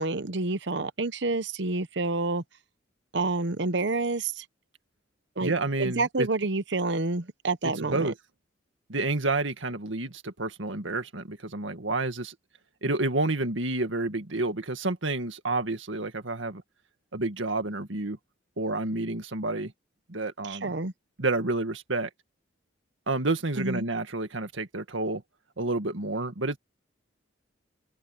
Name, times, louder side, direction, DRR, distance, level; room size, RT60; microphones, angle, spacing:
voice 1, 0.0-2.4 3.1-4.4 5.4-5.5 5.8-8.1 20.4-20.9 23.6-23.9, right 3 dB, 65° right, 0.9 m, -28 dB
voice 2, 5.4-6.3 7.6-8.1 8.9-12.3 12.8-16.6 17.1-18.2 18.6-19.7 20.1-20.7 21.2-22.1 23.1-25.2 25.6-26.6, right 2 dB, 80° right, 2.0 m, -29 dB
open air
head